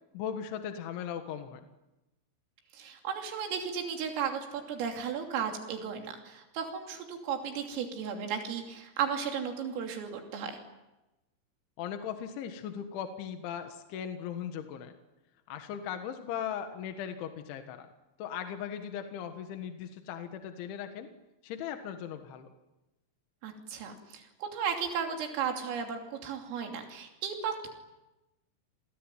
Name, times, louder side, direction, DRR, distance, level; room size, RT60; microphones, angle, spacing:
voice 1, 0.1-1.7 11.8-14.9 15.5-17.9 18.2-21.1 21.4-22.5, left 8 dB, 75° left, 6 dB, 3.8 m, -38 dB
voice 2, 2.7-10.6 23.4-27.8, right 7 dB, 90° right, 2 dB, 5.5 m, -35 dB
28.5 x 22.5 x 9.2 m, 1.0 s
omnidirectional pair, 5.7 m